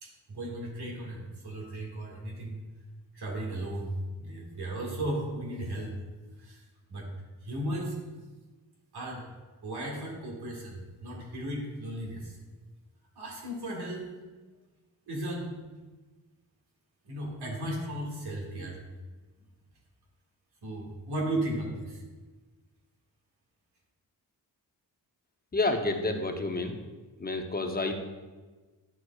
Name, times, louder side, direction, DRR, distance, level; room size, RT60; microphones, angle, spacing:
voice 1, 0.0-2.6 3.1-5.9 6.4-6.6 6.9-7.1 7.4-8.0 8.9-9.2 9.6-12.4 13.2-14.1 15.1-15.6 17.1-18.8 20.6-22.0, right 1 dB, 80° right, -1 dB, 1.9 m, -35 dB
voice 2, 25.5-26.8 27.2-27.9, left 2 dB, 25° left, 4 dB, 0.7 m, -29 dB
10.0 x 6.2 x 2.3 m, 1.3 s
wide cardioid pair, 100°, 39 cm